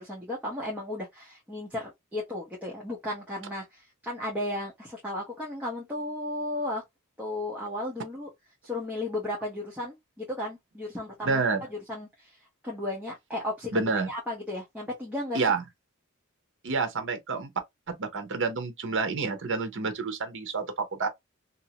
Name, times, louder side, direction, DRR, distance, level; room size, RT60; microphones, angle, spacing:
voice 1, 0.0-6.8 7.2-8.3 8.6-11.4 11.7-15.4, left 1 dB, 5° right, 1.0 m, -35 dB
voice 2, 11.2-11.6 13.7-14.1 15.3-15.6 16.6-17.5 17.9-21.1, right 4 dB, 60° right, 0.8 m, -28 dB
2.8 x 2.7 x 2.8 m
head